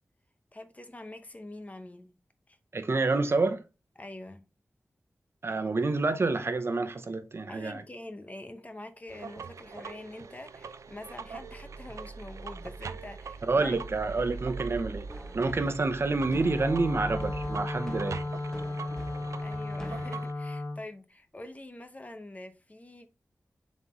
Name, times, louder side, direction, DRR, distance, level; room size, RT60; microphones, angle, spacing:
voice 1, 0.5-2.1 2.5-2.6 4.0-4.4 7.5-13.8 19.4-23.1, left 1 dB, 30° left, 0.8 m, -45 dB
voice 2, 2.7-3.6 5.4-7.8 13.5-15.1 15.3-18.2, right 3 dB, 55° right, 0.8 m, -28 dB
sound 1, 9.1-20.3, right 5 dB, 85° right, 0.4 m, -41 dB
sound 2, 15.1-20.1, equal, 10° left, 1.5 m, -45 dB
Wind instrument woodwind instrument, 16.3-20.8, left 2 dB, 75° left, 1.4 m, -35 dB
7.1 x 4.3 x 3.1 m
wide cardioid pair, 60°, 5 cm